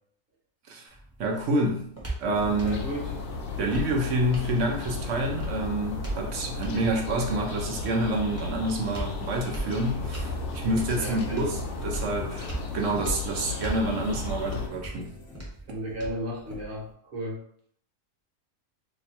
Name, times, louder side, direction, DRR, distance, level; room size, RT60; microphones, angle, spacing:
sound 1, 0.9-16.9, right 1 dB, 10° right, 0.9 m, -39 dB
voice 1, 1.2-1.8 2.2-2.8 3.6-12.5 12.7-15.1, right 1 dB, 65° right, 1 dB, 1.0 m, -28 dB
sound 2, 2.3-14.7, left 3 dB, 65° left, 0.8 m, -34 dB
voice 2, 2.6-3.2 11.0-11.6 15.7-17.4, equal, 45° right, -5 dB, 1.4 m, -34 dB
sound 3, 8.6-15.4, left 3 dB, 45° left, 1.0 m, -50 dB
3.0 x 2.2 x 4.2 m, 0.64 s
omnidirectional pair, 1.5 m